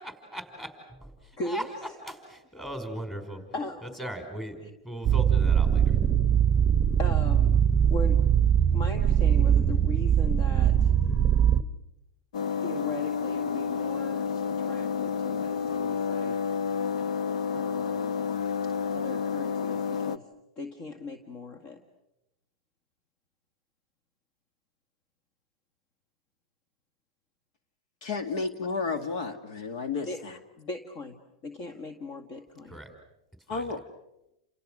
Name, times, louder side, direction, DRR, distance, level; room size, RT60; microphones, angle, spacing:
voice 1, 0.0-1.7 2.0-3.4 3.8-6.0 32.7-32.9 33.5-33.8, right 1 dB, 5° left, 5 dB, 5.2 m, -39 dB
sound 1, 5.0-11.6, right 9 dB, 15° right, 1.1 m, -22 dB
voice 2, 7.0-8.2 8.7-10.9 12.6-16.5 17.5-18.2 18.6-20.3 20.6-21.8 30.1-30.2 30.6-32.8, left 2 dB, 35° left, 7 dB, 1.9 m, -38 dB
sound 2, 12.3-20.2, left 6 dB, 85° left, 1.0 m, -30 dB
voice 3, 28.0-30.4 33.5-33.8, left 4 dB, 60° left, 8 dB, 2.2 m, -32 dB
29.5 x 28.5 x 6.5 m, 0.89 s
supercardioid pair, 155°, 3 cm